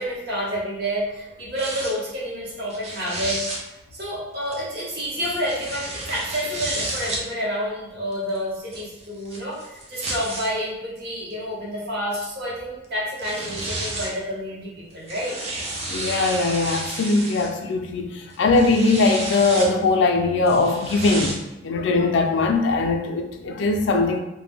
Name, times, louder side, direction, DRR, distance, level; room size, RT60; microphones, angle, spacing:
voice 1, 0.0-3.4 3.9-15.4 15.6-15.8, equal, 55° right, -6 dB, 0.8 m, -29 dB
sound 1, 1.6-1.9 2.7-3.6 4.5-7.2 8.1-10.5 11.3-11.4 12.8-12.9 13.2-14.2 14.9-17.5 18.3-19.7 20.5-21.3, right 2 dB, 30° right, 0.4 m, -31 dB
voice 2, 15.9-21.3 21.6-24.2, left 3 dB, 65° left, 5 dB, 0.3 m, -20 dB
2.1 x 2.1 x 3.3 m, 0.96 s
head